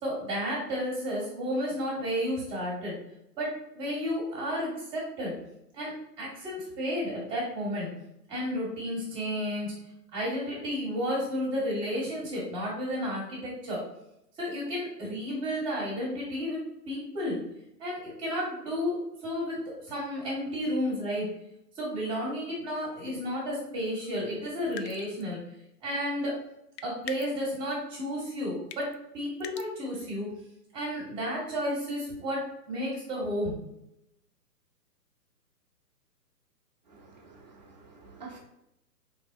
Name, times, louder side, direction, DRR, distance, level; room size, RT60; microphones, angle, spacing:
voice 1, 0.0-2.9 3.4-5.3 5.7-7.9 8.3-9.7 10.1-13.8 14.4-16.6 16.9-17.4 17.8-21.3 21.8-25.4 25.8-26.3 26.8-28.9 29.1-30.3 30.7-33.6, equal, 10° right, -5 dB, 0.9 m, -32 dB
sound 1, 24.7-25.3 26.8-27.6 28.7-29.0 29.4-29.7, left 8 dB, 85° left, 0.6 m, -42 dB
voice 2, 36.9-38.4, right 4 dB, 30° right, -1 dB, 0.5 m, -49 dB
4.4 x 3.3 x 2.5 m, 0.83 s
hypercardioid pair, 145°, 49 cm